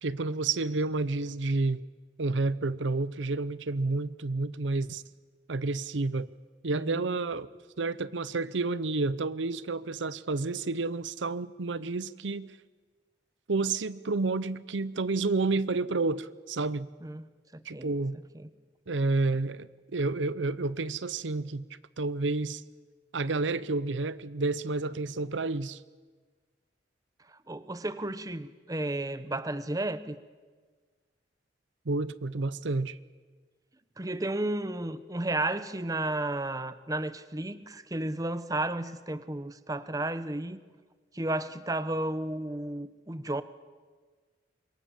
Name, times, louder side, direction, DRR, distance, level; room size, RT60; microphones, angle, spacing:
voice 1, 0.0-1.8 2.2-5.0 5.5-6.3 6.6-7.5 7.8-12.6 13.5-16.9 17.6-18.2 18.9-21.6 22.0-22.6 23.1-25.8 31.9-33.0, right 3 dB, 80° right, 0.8 m, -30 dB
voice 2, 6.7-7.2 17.0-17.3 17.5-18.0 18.3-18.5 27.3-30.2 34.0-40.6 41.1-43.4, right 1 dB, 20° right, 0.9 m, -33 dB
26.0 x 23.0 x 7.3 m
head